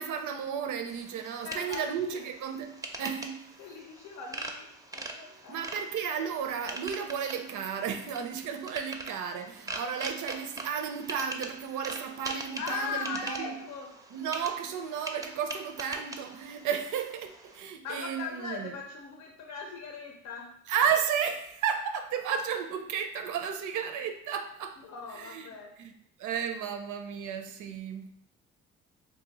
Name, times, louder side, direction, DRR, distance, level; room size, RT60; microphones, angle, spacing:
voice 1, 0.0-3.5 5.5-13.6 14.1-18.7 20.7-24.8 25.2-25.5 25.8-25.9 26.2-28.1, right 7 dB, 80° right, 0.5 m, -33 dB
sound 1, 0.9-17.6, right 2 dB, 10° right, 0.4 m, -43 dB
voice 2, 1.4-2.2 3.6-5.6 12.6-14.0 17.8-20.6 24.8-25.8, left 5 dB, 75° left, 0.6 m, -39 dB
2.7 x 2.6 x 4.0 m
cardioid pair, 90°, 30 cm